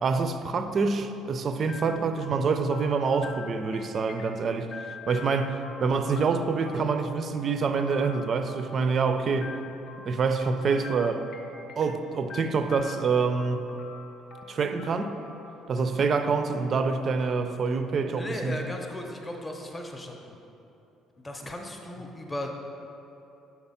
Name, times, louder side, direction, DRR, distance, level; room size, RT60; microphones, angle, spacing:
voice 1, 0.0-9.5 10.0-11.3 11.8-13.7 14.5-15.2 15.7-18.6, right 4 dB, 35° right, 9 dB, 0.4 m, -26 dB
sound 1, 1.7-17.5, left 4 dB, 65° left, 0.7 m, -45 dB
voice 2, 18.2-20.3 21.2-22.6, left 1 dB, 15° left, 2 dB, 0.7 m, -36 dB
6.9 x 4.5 x 5.6 m, 3.0 s
cardioid pair, 155°, 0 cm